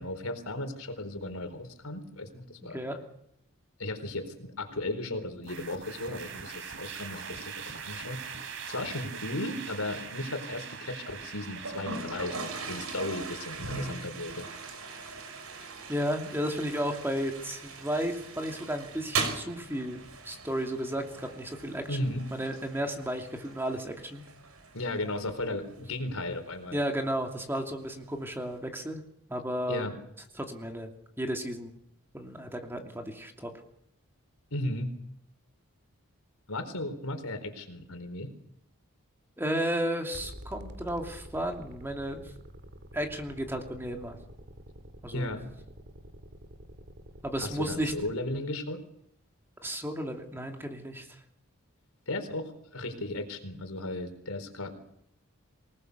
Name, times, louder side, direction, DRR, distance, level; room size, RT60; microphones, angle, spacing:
voice 1, 0.0-2.8 3.8-8.4 8.7-14.5 21.9-22.2 24.7-26.8 29.7-30.0 34.5-34.9 36.5-38.3 45.1-45.4 47.4-48.8 52.1-54.7, left 1 dB, 80° left, 7 dB, 4.3 m, -35 dB
sound 1, 5.4-24.7, right 6 dB, 65° right, 3.3 m, -45 dB
Toilet flush, 11.6-28.6, right 4 dB, 80° right, 5.6 m, -41 dB
voice 2, 15.9-24.2 26.7-29.0 29.3-29.9 30.4-30.9 31.2-31.7 32.1-33.5 39.4-42.2 42.9-44.2 45.0-45.3 47.2-47.9 49.6-51.1, equal, 10° right, 3 dB, 2.7 m, -33 dB
sound 2, 40.1-48.1, equal, 45° right, 2.3 m, -48 dB
26.5 x 19.0 x 6.9 m, 0.73 s
head